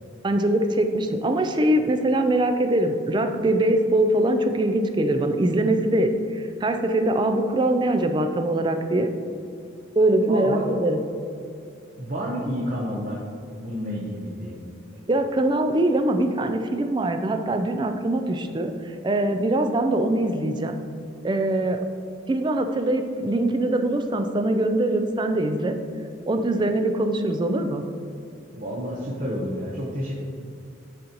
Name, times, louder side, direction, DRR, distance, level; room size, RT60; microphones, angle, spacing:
voice 1, 0.2-9.1 9.9-11.0 15.1-18.7 19.0-20.7 21.2-21.8 22.3-25.7 26.3-27.8, right 1 dB, 20° right, 6 dB, 0.3 m, -22 dB
voice 2, 10.3-10.6 12.0-13.2 13.6-14.6 28.5-30.1, equal, 40° right, -4 dB, 0.7 m, -30 dB
9.9 x 4.0 x 2.9 m, 2.5 s
head